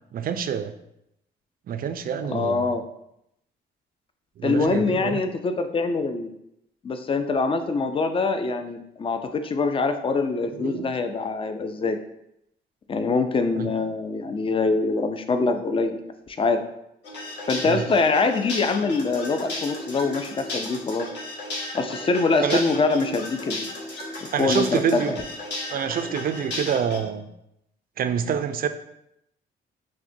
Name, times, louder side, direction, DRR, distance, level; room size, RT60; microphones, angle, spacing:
voice 1, 0.1-0.8 1.7-2.7 4.4-5.2 10.5-10.8 13.6-13.7 17.7-17.8 22.4-22.6 24.3-25.1 25.7-27.3 28.0-28.7, right 7 dB, 50° right, 10 dB, 0.4 m, -27 dB
voice 2, 2.3-2.8 4.4-6.3 6.8-12.0 12.9-16.0 16.3-16.6 17.5-21.1 21.7-23.7 24.2-25.2, left 3 dB, 25° left, 8 dB, 0.4 m, -24 dB
sound 1, 17.0-27.0, left 2 dB, 60° left, 1.2 m, -34 dB
5.8 x 2.2 x 2.6 m, 0.80 s
cardioid pair, 90°, 20 cm